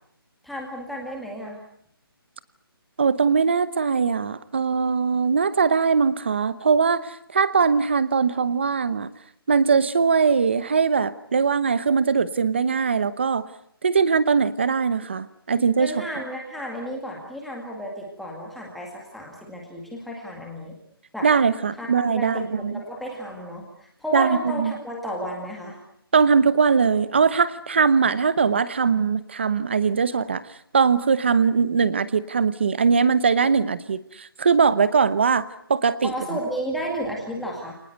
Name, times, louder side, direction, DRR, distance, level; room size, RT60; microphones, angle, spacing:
voice 1, 0.4-1.6 15.8-20.7 21.1-21.3 21.8-25.8 36.0-37.7, equal, ahead, -2 dB, 2.1 m, -32 dB
voice 2, 3.0-9.1 9.5-13.5 13.8-15.9 21.2-22.8 24.1-24.7 26.1-30.4 30.7-36.1, right 5 dB, 30° right, 16 dB, 1.0 m, -21 dB
29.0 x 19.5 x 8.1 m, 0.70 s
hypercardioid pair, 180°, 13 cm